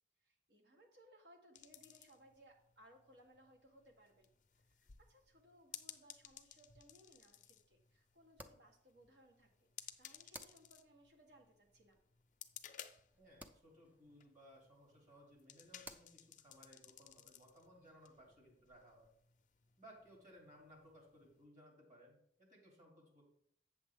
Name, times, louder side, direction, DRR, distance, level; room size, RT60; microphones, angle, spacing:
voice 1, 0.2-4.3 4.5-12.0, equal, 65° right, 2 dB, 1.3 m, -66 dB
sound 1, 1.6-21.5, left 10 dB, 45° left, 0.6 m, -59 dB
sound 2, 6.2-19.1, right 1 dB, 10° right, 0.4 m, -63 dB
voice 2, 13.2-19.1 19.8-23.2, equal, 45° right, -2 dB, 2.8 m, -62 dB
8.4 x 6.9 x 3.6 m, 0.70 s
head